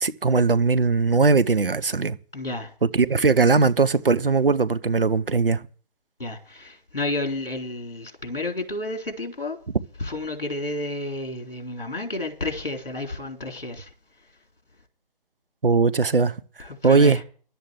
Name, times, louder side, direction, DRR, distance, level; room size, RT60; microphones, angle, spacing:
voice 1, 0.0-2.2 2.8-5.6 15.6-16.3 16.8-17.2, right 4 dB, 65° right, 0.9 m, -19 dB
voice 2, 2.3-2.7 6.2-9.6 10.0-13.9 16.6-17.2, left 2 dB, 65° left, 4.1 m, -31 dB
12.0 x 7.9 x 7.9 m
figure-of-eight pair, 150°, 30 cm